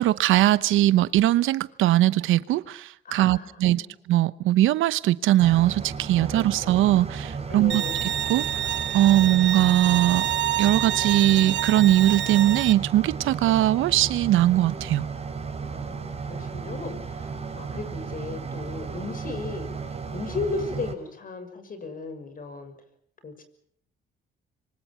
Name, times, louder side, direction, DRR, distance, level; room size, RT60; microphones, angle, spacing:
voice 1, 0.0-8.4 8.9-10.3 10.6-15.1, right 14 dB, 85° right, 0.9 m, -21 dB
voice 2, 3.0-3.9 6.2-6.8 7.5-8.0 13.5-13.6 15.6-19.7 20.1-22.7 23.2-23.4, left 3 dB, 45° left, 6.4 m, -36 dB
sound 1, 5.4-20.9, right 5 dB, 30° right, 6.4 m, -34 dB
Bowed string instrument, 7.7-12.7, right 11 dB, 70° right, 1.2 m, -27 dB
26.5 x 24.0 x 5.9 m
cardioid pair, 90°, 20 cm